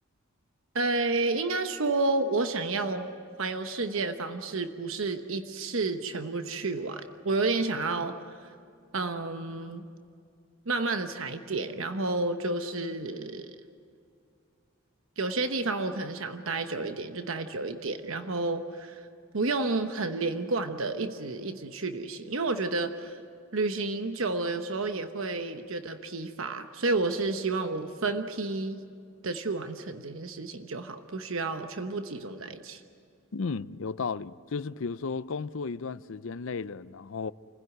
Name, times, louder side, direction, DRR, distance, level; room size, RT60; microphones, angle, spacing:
voice 1, 0.7-3.1 3.4-8.1 8.9-9.9 10.7-13.6 15.2-19.1 19.3-23.2 23.5-28.8 29.2-32.8, right 3 dB, 70° right, 1.1 m, -30 dB
voice 2, 33.3-37.3, left 4 dB, 65° left, 0.5 m, -34 dB
29.0 x 16.0 x 9.4 m
head